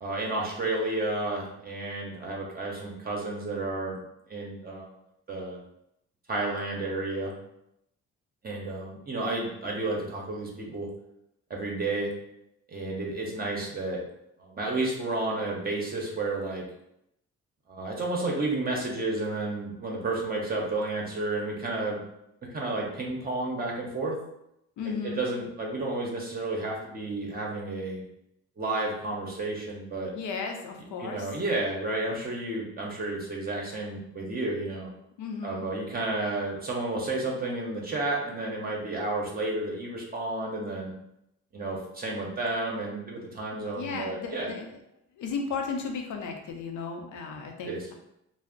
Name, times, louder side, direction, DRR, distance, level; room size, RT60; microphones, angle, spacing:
voice 1, 0.0-4.0 4.3-4.9 5.3-5.6 6.3-7.3 8.4-10.9 11.5-12.1 12.7-14.0 14.4-16.6 17.7-22.0 22.5-24.2 24.8-28.0 28.6-30.1 31.0-34.9 35.4-40.9 41.5-44.5 47.6-47.8, right 2 dB, 30° right, -2 dB, 0.7 m, -31 dB
voice 2, 24.8-25.2 30.1-31.3 35.2-35.7 43.5-44.8 45.2-47.9, left 5 dB, 75° left, 3 dB, 0.6 m, -35 dB
2.4 x 2.0 x 3.6 m, 0.80 s
cardioid pair, 90°, 30 cm